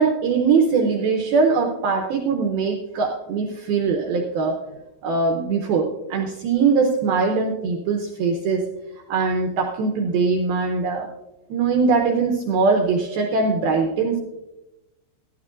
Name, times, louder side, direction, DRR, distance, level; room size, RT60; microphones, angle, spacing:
voice 1, 0.0-4.6 5.0-8.7 9.1-11.1 11.5-14.2, right 4 dB, 85° right, 3 dB, 2.1 m, -21 dB
16.0 x 12.0 x 2.5 m, 0.97 s
omnidirectional pair, 5.5 m